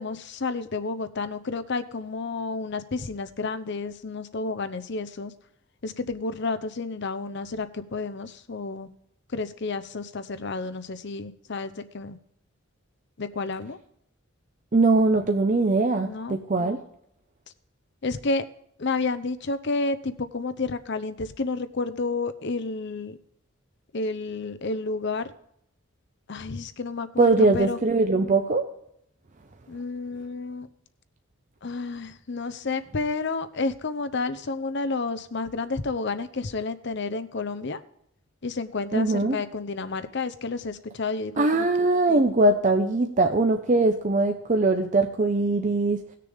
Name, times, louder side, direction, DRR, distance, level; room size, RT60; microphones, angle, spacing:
voice 1, 0.0-5.3 5.8-8.9 9.3-12.2 13.2-13.8 16.0-16.4 18.0-18.5 18.8-23.2 23.9-25.3 26.3-27.8 29.7-30.7 31.6-37.8 38.4-41.7, left 3 dB, 55° left, 12 dB, 0.7 m, -30 dB
voice 2, 14.7-16.8 27.2-28.7 38.9-39.4 41.4-46.0, right 2 dB, 35° right, 5 dB, 0.6 m, -21 dB
18.0 x 6.7 x 3.5 m, 0.73 s
head